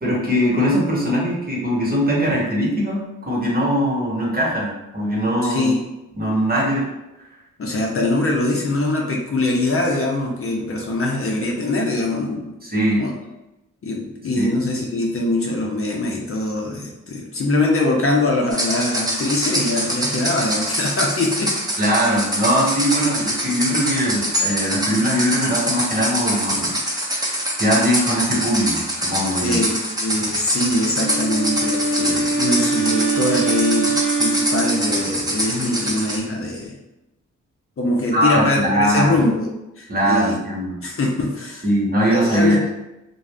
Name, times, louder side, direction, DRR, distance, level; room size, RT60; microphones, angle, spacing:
voice 1, 0.0-5.7 6.1-6.9 12.6-13.0 14.4-14.5 21.8-29.6 38.1-39.2 39.9-40.8 41.6-42.6, equal, 30° right, -4 dB, 1.1 m, -21 dB
voice 2, 5.4-5.8 7.6-12.5 13.0-13.1 13.8-21.5 22.1-22.2 29.4-36.8 37.8-39.5 39.8-40.4 40.8-41.7 42.1-42.7, left 2 dB, 45° left, -1 dB, 0.6 m, -22 dB
sound 1, 18.5-36.2, equal, 10° right, 0.8 m, -24 dB
Wind instrument woodwind instrument, 30.9-35.4, right 4 dB, 80° left, 0.8 m, -23 dB
2.4 x 2.0 x 3.3 m, 0.95 s
supercardioid pair, 45°, 32 cm